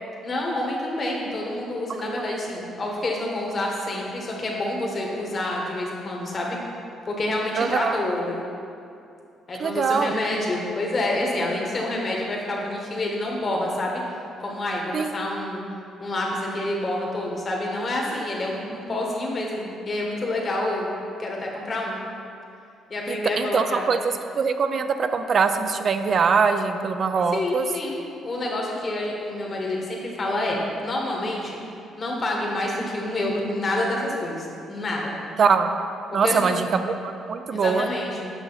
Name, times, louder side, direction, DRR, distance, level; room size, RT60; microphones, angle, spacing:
voice 1, 0.2-6.6 7.0-8.5 9.5-14.0 14.4-15.6 16.0-20.9 21.2-22.0 22.9-23.9 27.3-28.0 28.2-31.6 32.0-35.1 36.1-36.6 37.5-38.2, left 1 dB, 40° left, -2 dB, 1.6 m, -28 dB
voice 2, 7.6-8.0 9.6-10.1 14.9-15.1 23.1-24.0 24.4-27.7 35.4-35.7 36.1-37.9, right 5 dB, 45° right, 8 dB, 0.5 m, -22 dB
8.0 x 6.2 x 4.0 m, 2.6 s
cardioid pair, 100°, 0 cm